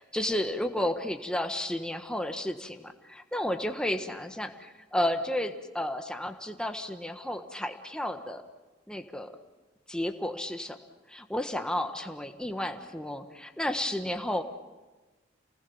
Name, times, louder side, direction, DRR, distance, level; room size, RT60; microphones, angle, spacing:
voice 1, 0.0-8.4 8.9-9.3 9.9-10.8 11.1-14.4, left 1 dB, 5° left, 6 dB, 1.3 m, -32 dB
28.5 x 19.5 x 7.2 m, 1.2 s
head